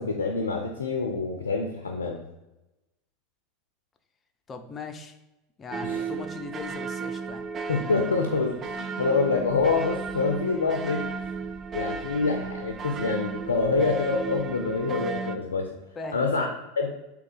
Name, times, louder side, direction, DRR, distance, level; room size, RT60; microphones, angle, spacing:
voice 1, 0.0-2.2 5.8-6.1 7.7-11.1 11.7-15.8 16.1-16.5 16.7-16.9, left 4 dB, 90° left, 2 dB, 0.5 m, -26 dB
voice 2, 4.5-5.1 5.6-7.5 16.0-16.5, left 4 dB, 30° left, 6 dB, 0.5 m, -38 dB
sound 1, 5.7-15.4, right 5 dB, 35° right, 0.3 m, -34 dB
3.8 x 2.9 x 3.9 m, 0.97 s
hypercardioid pair, 85°, 0 cm